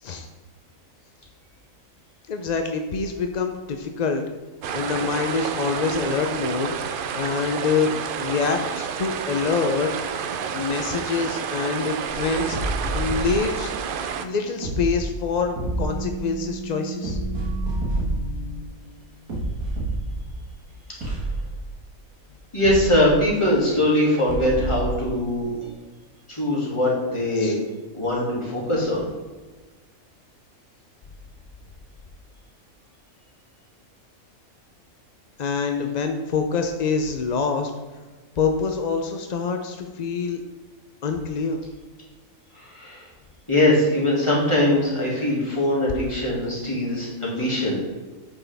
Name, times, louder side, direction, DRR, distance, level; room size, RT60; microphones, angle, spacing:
voice 1, 2.3-4.2 4.7-6.7 7.1-7.9 8.2-9.9 10.5-12.6 12.9-13.7 14.2-17.2 27.4-27.6 35.4-37.7 38.4-40.4 41.0-41.6, left 5 dB, 60° left, 5 dB, 0.4 m, -25 dB
sound 1, 4.6-14.3, right 7 dB, 65° right, 0.5 m, -30 dB
sound 2, 12.1-18.8 19.3-20.5 21.0-21.7 22.6-23.5 24.3-25.1 25.6-25.7, right 2 dB, 85° right, 2.1 m, -29 dB
voice 2, 22.5-25.5 26.3-29.1 42.6-43.1 43.5-47.7, left 1 dB, 20° left, -5 dB, 2.5 m, -22 dB
8.9 x 6.3 x 3.4 m, 1.3 s
omnidirectional pair, 1.4 m